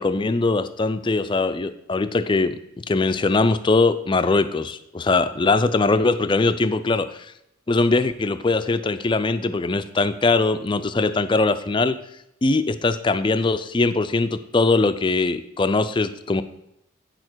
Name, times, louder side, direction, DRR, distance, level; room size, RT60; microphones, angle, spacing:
voice 1, 0.0-7.3 7.7-12.0 12.4-16.4, left 3 dB, 20° left, 12 dB, 0.4 m, -21 dB
9.2 x 6.5 x 4.5 m, 0.82 s
head